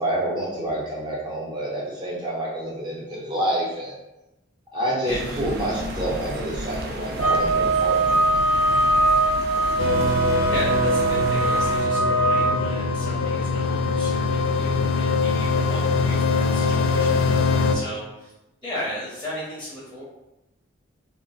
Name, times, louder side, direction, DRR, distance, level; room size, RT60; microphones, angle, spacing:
voice 1, 0.0-4.0 4.7-8.2, right 1 dB, 20° right, -5 dB, 0.7 m, -28 dB
sound 1, 5.1-11.8, right 1 dB, 50° right, 0.4 m, -33 dB
sound 2, 7.2-12.6, right 2 dB, 75° right, 0.9 m, -21 dB
voice 2, 9.6-18.3 18.6-20.0, equal, 5° left, -9 dB, 0.7 m, -36 dB
sound 3, 9.8-17.8, left 4 dB, 60° left, 0.3 m, -23 dB
2.4 x 2.1 x 3.8 m, 0.95 s
head